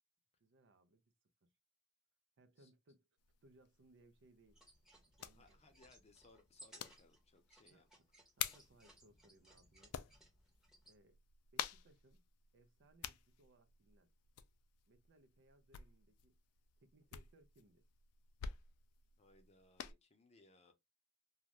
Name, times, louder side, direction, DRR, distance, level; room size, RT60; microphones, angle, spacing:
voice 1, 0.4-1.0 1.4-1.5 2.4-3.1 3.4-4.6 4.9-5.8 7.7-7.8 8.4-10.0 10.9-11.2 11.5-12.2 12.5-14.1 14.9-16.4 16.8-17.9, right 1 dB, 55° right, 0.5 m, -68 dB
sound 1, 3.2-19.9, left 9 dB, 75° left, 0.3 m, -51 dB
sound 2, 4.5-11.0, right 1 dB, ahead, 0.8 m, -64 dB
voice 2, 5.3-7.9 19.2-20.7, left 2 dB, 30° left, 0.6 m, -67 dB
2.5 x 2.3 x 3.0 m
head